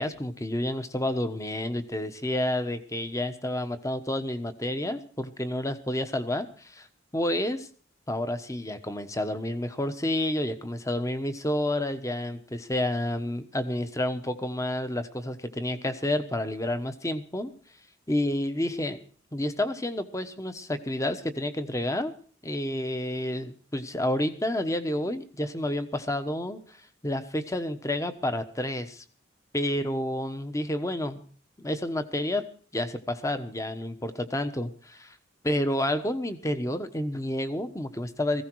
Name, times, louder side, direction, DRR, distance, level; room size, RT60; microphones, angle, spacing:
voice 1, 0.0-6.9 7.1-7.7 8.1-17.5 18.1-19.0 19.3-22.1 22.4-29.0 29.5-31.2 31.6-32.4 32.7-35.1 35.4-38.4, left 1 dB, 15° left, 10 dB, 1.1 m, -30 dB
17.5 x 16.0 x 4.7 m, 0.44 s
head